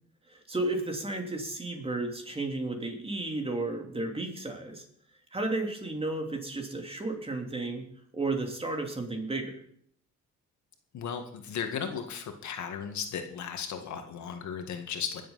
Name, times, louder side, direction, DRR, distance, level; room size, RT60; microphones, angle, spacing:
voice 1, 0.3-4.8 5.3-7.9 8.1-9.5, right 2 dB, 20° right, 3 dB, 3.1 m, -33 dB
voice 2, 10.9-15.2, left 7 dB, 70° left, 5 dB, 1.9 m, -36 dB
21.0 x 7.6 x 5.7 m, 0.66 s
cardioid pair, 90°, 30 cm